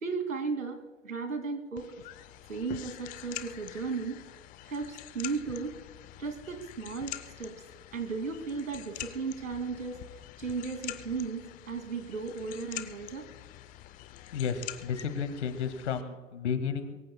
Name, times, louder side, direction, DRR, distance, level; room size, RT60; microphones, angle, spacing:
voice 1, 0.0-1.9 2.5-4.2 4.7-5.8 6.2-7.6 7.9-10.0 10.4-13.3, right 4 dB, 75° right, 6 dB, 2.7 m, -35 dB
sound 1, 1.8-16.0, left 15 dB, 20° left, 0.6 m, -45 dB
voice 2, 14.1-17.0, left 6 dB, 60° left, 10 dB, 2.0 m, -33 dB
23.5 x 22.5 x 2.3 m, 1.3 s
figure-of-eight pair, 105°, 39 cm